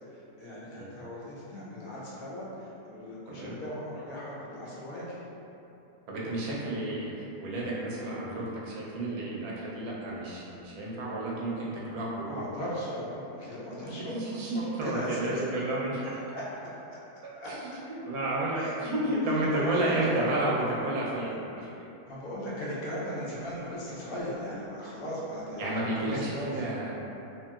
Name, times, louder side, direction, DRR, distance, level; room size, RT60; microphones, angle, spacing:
voice 1, 0.4-5.2 12.3-15.3 15.9-16.4 17.4-17.5 18.6-18.8 19.5-20.3 22.1-25.6 26.0-26.6, equal, 70° left, -7 dB, 1.0 m, -38 dB
voice 2, 6.1-12.4 13.9-16.1 17.5-17.8 18.1-21.7 25.6-26.9, right 1 dB, 75° right, -5 dB, 1.0 m, -31 dB
2.8 x 2.8 x 2.2 m, 2.9 s
omnidirectional pair, 1.7 m